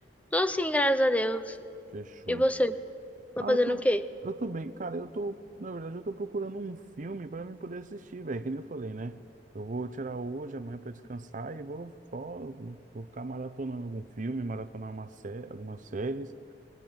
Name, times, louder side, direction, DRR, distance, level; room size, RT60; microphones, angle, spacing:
voice 1, 0.3-1.6 2.3-2.8 3.4-4.0, equal, 10° left, 11 dB, 0.7 m, -25 dB
voice 2, 1.9-2.4 3.4-3.8 4.2-9.2 9.5-16.4, right 2 dB, 45° right, 12 dB, 0.7 m, -37 dB
21.5 x 18.5 x 8.9 m, 2.5 s
head